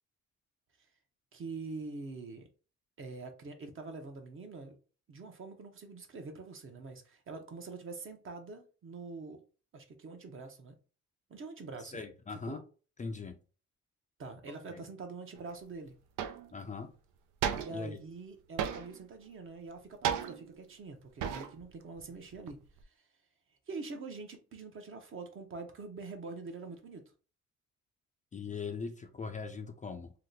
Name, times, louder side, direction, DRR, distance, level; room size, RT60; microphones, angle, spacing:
voice 1, 1.3-2.5 3.0-4.8 5.1-9.4 9.7-10.7 11.3-12.6 14.2-16.0 17.6-22.6 23.7-27.0, right 3 dB, 45° right, 5 dB, 0.8 m, -45 dB
voice 2, 11.9-12.6 13.0-13.4 14.7-14.8 16.5-16.9 17.7-18.0 28.3-30.1, left 4 dB, 25° left, 6 dB, 0.4 m, -40 dB
sound 1, 15.5-15.6 16.2-16.6 17.4-18.0 18.6-19.1 20.0-20.6 21.2-21.7 22.0-22.8, right 8 dB, 85° right, 0.5 m, -35 dB
2.8 x 2.1 x 3.8 m, 0.36 s
cardioid pair, 90°, 30 cm